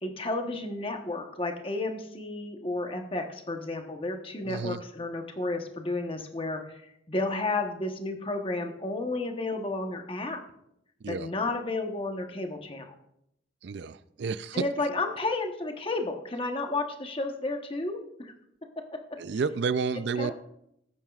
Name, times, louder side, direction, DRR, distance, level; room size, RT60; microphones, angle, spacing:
voice 1, 0.0-6.8 7.1-10.4 11.1-12.9 14.5-18.3 20.2-20.3, left 2 dB, 30° left, 1.0 m, -32 dB
voice 2, 4.5-4.8 11.0-11.3 13.6-14.6 19.2-20.3, right 5 dB, 60° right, 0.4 m, -30 dB
17.0 x 9.0 x 2.4 m
head